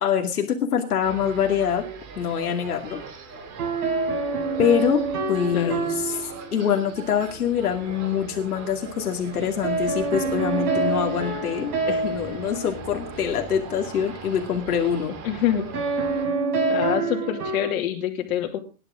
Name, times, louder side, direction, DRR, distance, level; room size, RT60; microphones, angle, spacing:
voice 1, 0.0-1.8 2.2-3.0 4.6-5.0 5.3-15.2, left 8 dB, 90° left, 4 dB, 2.4 m, -25 dB
sound 1, 1.0-16.3, right 4 dB, 40° right, 4.9 m, -40 dB
sound 2, 3.6-6.9 9.6-13.5 15.7-17.7, right 3 dB, 85° right, 6.4 m, -27 dB
voice 2, 15.2-15.7 16.7-18.6, left 11 dB, 65° left, 2 dB, 2.7 m, -26 dB
19.0 x 11.0 x 3.8 m, 0.35 s
hypercardioid pair, 130°, 44 cm